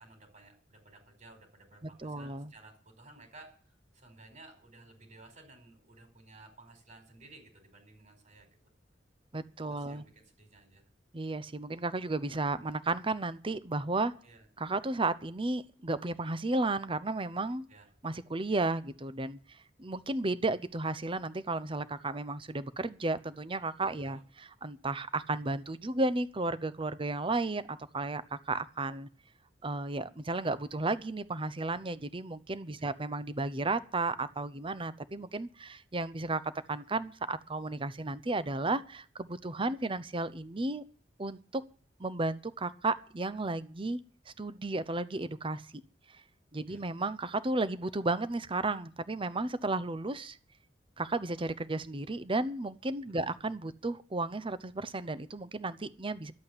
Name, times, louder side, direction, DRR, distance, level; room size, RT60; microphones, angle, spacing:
voice 1, 0.0-8.5 9.7-10.8 14.2-14.4 17.7-17.9 24.0-24.2 32.8-32.9 46.7-46.9 53.2-53.4, right 2 dB, 45° right, 5 dB, 4.6 m, -55 dB
voice 2, 1.8-2.5 9.3-10.0 11.1-14.1 14.6-17.7 18.0-29.1 29.6-40.8 41.2-41.6 42.0-44.0 44.3-45.8 46.5-50.4 51.0-56.3, right 2 dB, 30° right, 15 dB, 0.8 m, -33 dB
11.5 x 8.4 x 9.8 m, 0.43 s
head